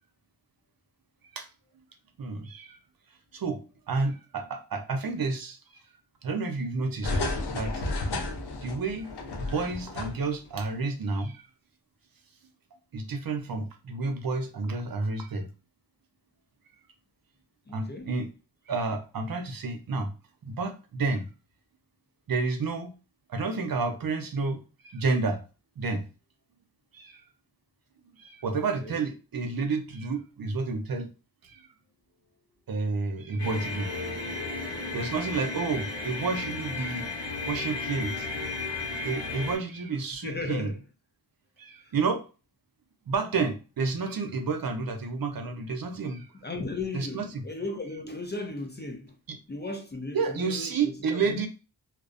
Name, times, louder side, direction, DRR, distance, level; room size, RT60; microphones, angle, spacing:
voice 1, 2.2-2.8 3.3-3.6 3.9-5.8 6.2-7.8 8.6-9.1 9.4-11.4 12.9-15.5 17.7-18.3 18.7-20.1 20.4-21.3 22.3-22.9 23.3-25.4 25.8-26.0 26.9-27.2 28.2-31.1 31.4-31.7 32.7-33.9 34.9-37.1 37.4-38.3 39.0-40.7 41.6-42.2 43.1-46.3 46.9-47.4 49.3-49.4 50.1-51.5, right 4 dB, 55° right, 0.6 m, -30 dB
sound 1, 7.0-10.5 10.8-10.9, left 2 dB, 70° left, 0.6 m, -32 dB
voice 2, 17.7-18.1 28.8-29.0 40.2-40.8 41.8-41.9 46.4-49.2 49.5-51.5, left 2 dB, 25° left, 0.5 m, -36 dB
sound 2, 33.4-39.6, left 3 dB, 85° left, 1.0 m, -34 dB
2.4 x 2.0 x 2.4 m
cardioid pair, 50°, 43 cm